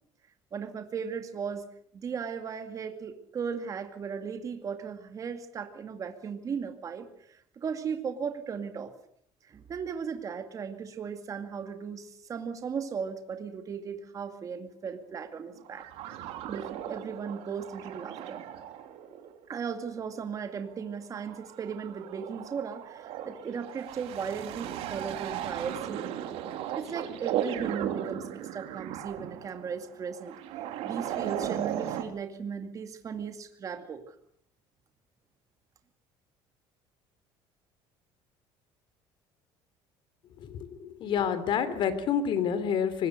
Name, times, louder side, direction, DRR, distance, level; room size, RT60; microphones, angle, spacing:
voice 1, 0.5-1.7 1.9-8.9 9.4-15.9 16.2-18.4 19.5-26.2 26.8-30.4 30.8-34.2, right 6 dB, 30° right, 7 dB, 2.2 m, -37 dB
sound 1, 15.6-32.0, right 10 dB, 70° right, 2.9 m, -37 dB
voice 2, 40.4-43.1, left 7 dB, 50° left, 13 dB, 3.2 m, -28 dB
24.5 x 20.5 x 6.6 m, 0.66 s
cardioid pair, 140°, 11 cm